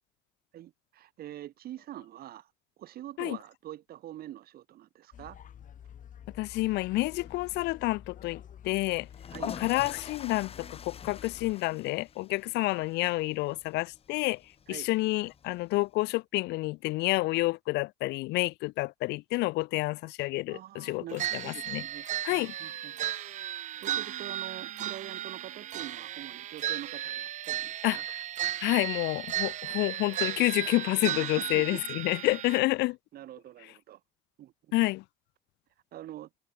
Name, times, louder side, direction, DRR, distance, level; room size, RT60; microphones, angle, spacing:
voice 1, 0.5-2.5 2.8-5.4 9.3-9.5 14.7-14.9 20.5-28.0 31.2-31.8 33.1-34.0 34.4-34.5 35.9-36.3, right 13 dB, 65° right, 1.8 m, -45 dB
sound 1, 5.1-11.5, left 9 dB, 50° left, 5.1 m, -49 dB
voice 2, 6.4-9.1 9.5-14.4 14.7-21.8 22.2-22.5 27.8-28.0 28.6-33.0 34.7-35.0, left 21 dB, 85° left, 0.8 m, -29 dB
sound 2, 9.0-15.9, left 7 dB, 35° left, 1.1 m, -46 dB
sound 3, 21.2-32.6, right 12 dB, 45° right, 0.4 m, -35 dB
cardioid pair, 110°, 17 cm